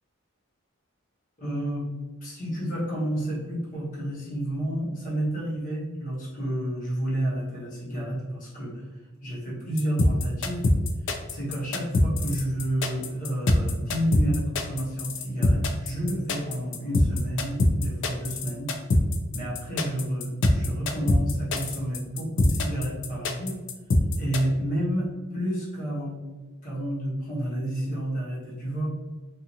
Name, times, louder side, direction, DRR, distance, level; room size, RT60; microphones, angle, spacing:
voice 1, 1.4-1.9 2.2-8.9 9.2-10.7 11.3-18.7 19.3-23.6 24.2-26.2 26.6-28.9, right 1 dB, 40° left, -8 dB, 1.2 m, -30 dB
sound 1, 9.8-24.4, left 1 dB, 60° left, 0.4 m, -23 dB
2.6 x 2.4 x 2.7 m, 1.3 s
head